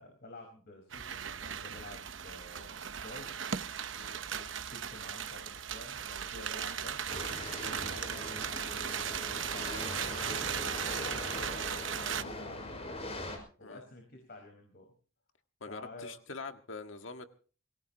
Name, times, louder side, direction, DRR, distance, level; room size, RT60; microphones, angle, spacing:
voice 1, 0.0-3.3 4.2-7.1 7.8-13.0 13.6-14.9 15.6-16.1, left 2 dB, 55° left, 3 dB, 4.8 m, -50 dB
sound 1, 0.9-12.2, right 8 dB, 70° right, 0.9 m, -37 dB
sound 2, 7.1-13.4, left 1 dB, 30° left, 5.3 m, -41 dB
voice 2, 15.6-17.3, left 4 dB, 75° left, 7 dB, 1.7 m, -44 dB
25.5 x 18.0 x 2.9 m, 0.41 s
head